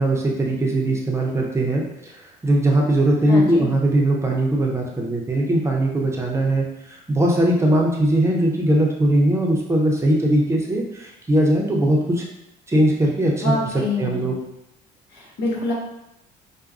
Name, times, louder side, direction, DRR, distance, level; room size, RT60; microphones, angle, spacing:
voice 1, 0.0-12.2 12.7-13.5 14.0-14.4, right 1 dB, 15° right, -1 dB, 0.7 m, -20 dB
voice 2, 3.3-3.7 13.4-14.2 15.1-15.7, left 2 dB, 75° left, -4 dB, 1.3 m, -25 dB
5.7 x 2.2 x 2.5 m, 0.85 s
cardioid pair, 110°, 17 cm